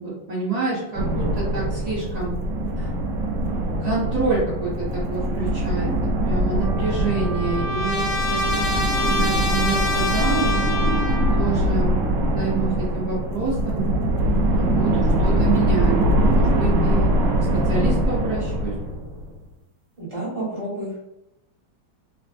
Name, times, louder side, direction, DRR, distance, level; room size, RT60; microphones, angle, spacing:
voice 1, 0.0-2.3 2.8-2.9 3.8-5.9 6.3-8.7 9.0-10.6 11.4-11.9 12.3-13.9 14.5-15.9 16.3-17.1 17.7-18.7, right 3 dB, 55° right, -9 dB, 0.4 m, -27 dB
sound 1, 0.9-19.4, right 1 dB, 75° right, 1.0 m, -22 dB
Trumpet, 6.6-11.5, left 1 dB, 80° left, 1.5 m, -26 dB
voice 2, 20.0-21.0, right 1 dB, 20° right, -7 dB, 1.0 m, -30 dB
3.3 x 2.6 x 2.5 m, 0.86 s
omnidirectional pair, 2.3 m